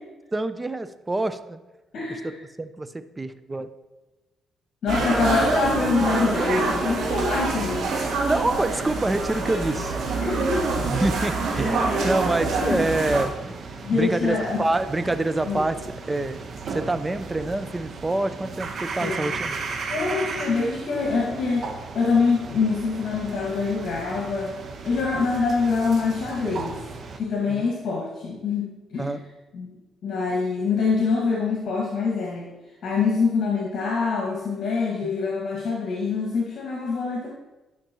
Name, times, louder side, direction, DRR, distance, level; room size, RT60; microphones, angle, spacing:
voice 1, 0.3-1.6 2.2-2.3 2.6-3.7 8.3-10.0 10.9-13.6 13.9-16.4 16.7-19.6 27.5-27.7 29.0-29.2 35.0-35.1, right 2 dB, 20° right, 11 dB, 0.5 m, -26 dB
voice 2, 1.9-2.4 4.8-7.9 10.2-10.7 11.8-12.1 12.4-12.8 13.8-14.6 15.5-15.6 19.0-19.3 19.9-21.7 21.9-24.5 24.8-26.8 27.2-29.1 29.5-29.7 30.0-32.5 32.8-37.3, left 4 dB, 65° left, -3 dB, 1.8 m, -25 dB
sound 1, 4.9-13.2, right 3 dB, 75° right, 2.5 m, -25 dB
sound 2, 12.4-27.2, right 4 dB, 55° right, 1.0 m, -36 dB
12.0 x 5.9 x 3.0 m, 1.1 s
cardioid pair, 90°, 0 cm